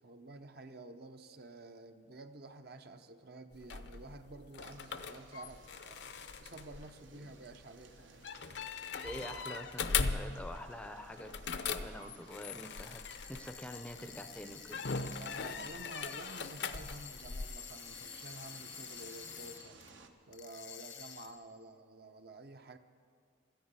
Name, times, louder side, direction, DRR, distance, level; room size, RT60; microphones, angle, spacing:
voice 1, 0.0-6.0 6.4-8.3 15.2-19.8 20.2-22.8, right 2 dB, 55° right, 8 dB, 0.7 m, -51 dB
sound 1, 3.5-14.0 14.7-17.5, left 5 dB, 65° left, 0.6 m, -40 dB
sound 2, 4.6-20.1, right 5 dB, 80° right, 1.1 m, -60 dB
voice 2, 9.0-11.3 11.7-13.0 13.3-14.8, equal, 5° left, 7 dB, 0.5 m, -46 dB
sound 3, 12.6-19.9 20.3-21.5, left 8 dB, 80° left, 1.1 m, -50 dB
13.0 x 10.5 x 8.8 m, 2.3 s
head